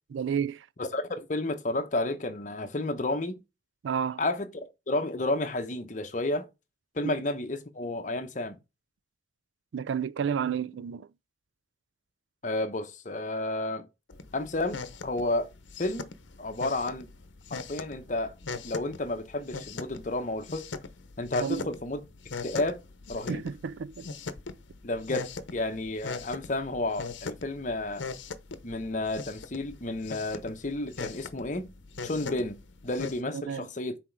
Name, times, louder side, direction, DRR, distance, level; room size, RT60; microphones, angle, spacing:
voice 1, 0.1-0.7 3.8-4.2 7.0-7.1 9.7-11.1 21.4-21.7 23.3-24.1 33.3-33.7, right 7 dB, 85° right, 0.4 m, -31 dB
voice 2, 0.8-3.4 4.2-6.5 6.9-8.6 12.4-13.9 14.3-15.5 15.8-16.1 16.4-17.1 17.5-18.3 18.6-20.7 21.2-22.0 22.4-22.8 23.1-23.4 24.8-28.0 28.6-31.7 32.0-32.6 32.8-34.0, left 2 dB, 45° left, 0.9 m, -31 dB
sound 1, 14.1-33.2, left 4 dB, 85° left, 0.8 m, -41 dB
6.1 x 4.3 x 4.5 m
head